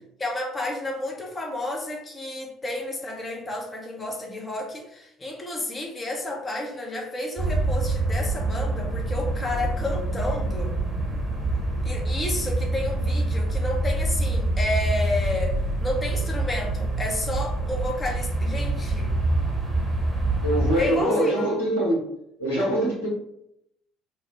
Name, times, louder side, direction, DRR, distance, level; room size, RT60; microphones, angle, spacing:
voice 1, 0.2-10.8 11.8-15.5 15.8-19.1 20.8-21.5, left 1 dB, 25° left, 1 dB, 0.6 m, -31 dB
sound 1, 7.4-20.8, right 2 dB, 25° right, 0.9 m, -26 dB
voice 2, 20.4-22.0 22.4-23.1, right 1 dB, 85° left, -6 dB, 1.0 m, -23 dB
3.2 x 2.1 x 3.1 m, 0.78 s
figure-of-eight pair, 55°, 0 cm